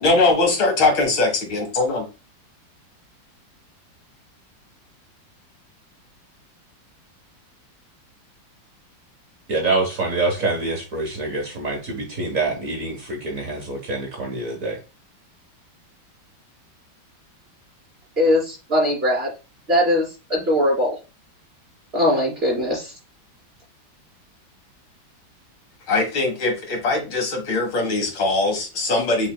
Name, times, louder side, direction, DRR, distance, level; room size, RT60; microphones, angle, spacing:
voice 1, 0.0-2.1 25.9-29.3, left 3 dB, 85° left, 3 dB, 2.3 m, -21 dB
voice 2, 9.5-14.8, right 3 dB, 50° right, 0 dB, 1.5 m, -25 dB
voice 3, 18.2-19.3 19.7-21.0 21.9-22.9, left 1 dB, 30° right, -5 dB, 3.1 m, -20 dB
5.9 x 4.0 x 2.2 m, 0.30 s
omnidirectional pair, 2.1 m